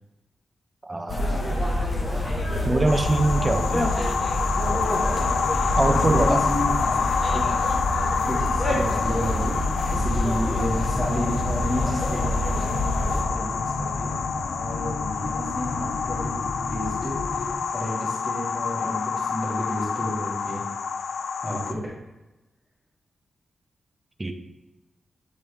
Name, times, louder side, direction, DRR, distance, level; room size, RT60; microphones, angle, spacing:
voice 1, 0.8-1.4 2.6-4.0 5.8-6.5 24.2-24.3, right 2 dB, 20° right, 7 dB, 0.6 m, -23 dB
sound 1, 1.1-13.2, left 1 dB, 40° left, 1.2 m, -26 dB
sound 2, 2.9-21.7, left 6 dB, 85° left, 0.3 m, -28 dB
voice 2, 5.8-7.0 7.3-7.4 8.2-14.2 14.5-16.3 16.6-20.6 21.4-21.8, equal, 10° left, -11 dB, 2.3 m, -31 dB
sound 3, 10.7-17.6, left 2 dB, 65° left, 0.8 m, -33 dB
9.7 x 4.1 x 3.5 m, 1.0 s
wide cardioid pair, 130°, 0 cm